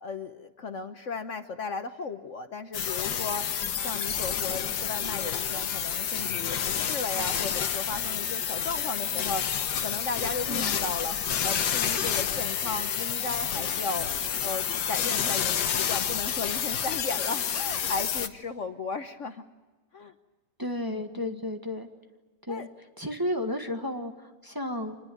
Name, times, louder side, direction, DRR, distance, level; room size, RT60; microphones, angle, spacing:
voice 1, 0.0-3.5 3.8-9.5 9.8-14.1 14.4-19.4 19.9-20.1 20.9-21.0 21.3-21.4 22.5-22.7, left 4 dB, 50° left, 8 dB, 1.2 m, -35 dB
sound 1, 2.7-18.3, left 8 dB, 80° left, 1.7 m, -29 dB
voice 2, 20.6-21.9 22.5-22.7 23.0-25.0, left 1 dB, 15° right, 4 dB, 1.5 m, -32 dB
26.0 x 21.0 x 9.3 m, 1.2 s
omnidirectional pair, 1.8 m